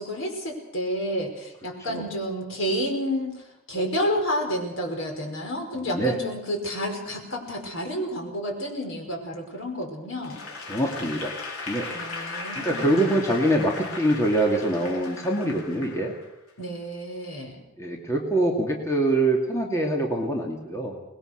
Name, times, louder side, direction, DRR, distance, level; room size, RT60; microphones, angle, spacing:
voice 1, 0.0-10.4 11.9-13.2 16.6-17.7, equal, 65° left, 2 dB, 5.3 m, -30 dB
voice 2, 5.7-6.2 10.7-11.4 11.7-11.9 12.6-16.1 17.8-21.0, right 1 dB, 15° left, 0 dB, 2.4 m, -24 dB
Applause / Crowd, 10.2-16.5, left 3 dB, 85° left, 4.1 m, -37 dB
24.0 x 20.5 x 6.6 m, 0.89 s
head